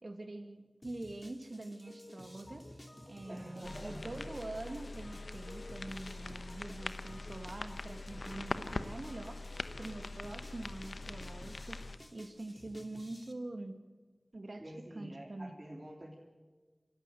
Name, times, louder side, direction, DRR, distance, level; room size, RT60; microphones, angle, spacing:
voice 1, 0.0-2.8 3.1-9.4 9.8-11.8 12.1-13.8 14.3-15.6, right 2 dB, 65° right, 7 dB, 2.2 m, -45 dB
sound 1, 0.8-13.3, left 1 dB, 25° left, 2.5 m, -56 dB
sound 2, 1.9-9.9, left 1 dB, 45° left, 2.8 m, -57 dB
voice 2, 3.3-4.1 14.6-16.2, right 1 dB, 35° right, -3 dB, 3.4 m, -47 dB
sound 3, 3.6-12.0, left 3 dB, 80° left, 1.0 m, -43 dB
26.0 x 14.0 x 7.9 m, 1.4 s
wide cardioid pair, 45°, 0 cm